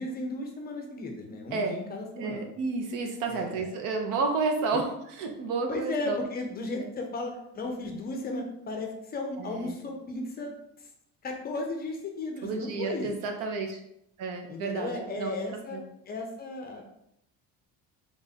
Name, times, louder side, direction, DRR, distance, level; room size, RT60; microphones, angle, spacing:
voice 1, 0.0-2.5 3.3-3.7 4.7-4.8 5.7-10.9 11.2-13.1 14.5-16.8, left 2 dB, 25° left, 2 dB, 0.5 m, -35 dB
voice 2, 2.2-6.2 6.8-6.9 9.4-9.7 12.4-13.8 14.2-15.3 15.7-15.8, right 4 dB, 70° right, 4 dB, 0.8 m, -31 dB
3.5 x 2.5 x 4.1 m, 0.77 s
cardioid pair, 150°, 35 cm